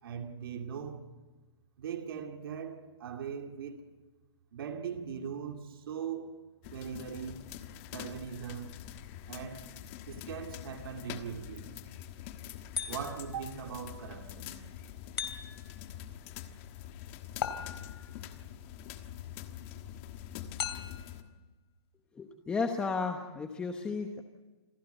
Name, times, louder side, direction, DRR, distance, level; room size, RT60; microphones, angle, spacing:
voice 1, 0.0-1.1 1.8-3.9 4.5-6.4 6.7-7.4 7.9-8.7 9.3-9.7 10.1-11.7 12.9-14.7, right 7 dB, 55° right, 2.3 m, -40 dB
sound 1, 6.6-21.2, left 11 dB, 25° left, 1.4 m, -45 dB
sound 2, 12.8-13.4 15.2-15.8 17.4-18.2 20.6-21.2, left 7 dB, 65° left, 2.9 m, -38 dB
voice 2, 22.1-24.2, left 4 dB, 5° left, 1.0 m, -33 dB
28.0 x 16.0 x 8.0 m
hypercardioid pair, 165°, 14 cm